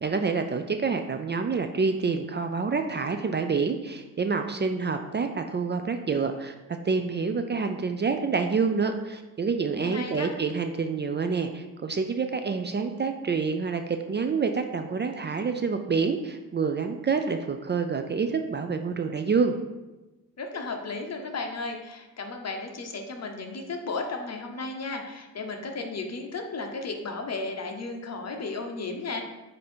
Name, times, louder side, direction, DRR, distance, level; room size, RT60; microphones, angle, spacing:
voice 1, 0.0-6.5 6.8-19.6, right 5 dB, 30° right, 7 dB, 0.4 m, -27 dB
voice 2, 9.8-10.3 20.4-29.2, left 3 dB, 45° left, 3 dB, 1.0 m, -34 dB
8.1 x 2.8 x 4.4 m, 1.1 s
cardioid pair, 90°, 35 cm